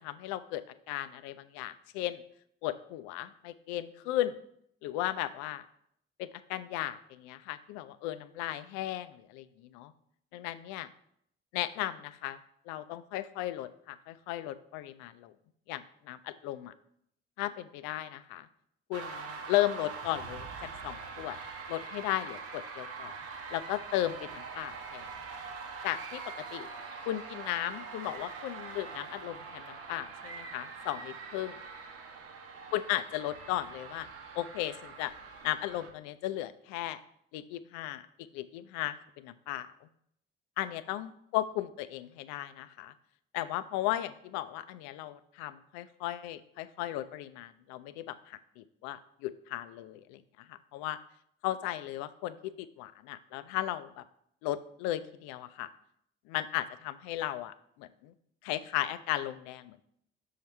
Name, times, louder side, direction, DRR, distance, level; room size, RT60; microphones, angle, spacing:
voice 1, 0.0-2.2 2.6-4.4 4.8-5.6 6.2-9.9 10.3-10.9 11.5-12.4 12.7-15.3 15.7-16.7 17.4-18.5 18.9-21.4 21.7-23.1 23.5-25.1 25.8-26.7 27.1-31.6 32.7-34.1 34.4-35.1 35.4-37.0 37.3-38.0 38.3-39.7 40.6-42.9 43.3-50.2 50.5-51.0 51.4-54.0 54.4-55.7 56.3-58.1 58.4-59.8, left 14 dB, 60° left, 14 dB, 0.5 m, -36 dB
sound 1, 18.9-35.9, right 5 dB, 50° right, 0.9 m, -44 dB
6.4 x 5.5 x 3.2 m, 0.71 s
figure-of-eight pair, 45°, 31 cm